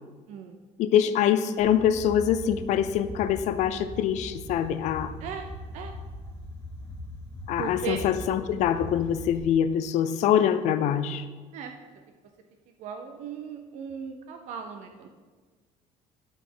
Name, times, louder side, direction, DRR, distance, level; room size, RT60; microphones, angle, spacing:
voice 1, 0.8-5.1 7.5-11.2, left 9 dB, 60° left, 12 dB, 0.5 m, -24 dB
sound 1, 1.6-9.4, left 1 dB, 20° left, 1.3 m, -41 dB
voice 2, 7.6-8.0 11.5-11.7 12.8-15.1, right 7 dB, 60° right, 5 dB, 0.5 m, -37 dB
11.0 x 4.1 x 3.8 m, 1.4 s
cardioid pair, 160°, 14 cm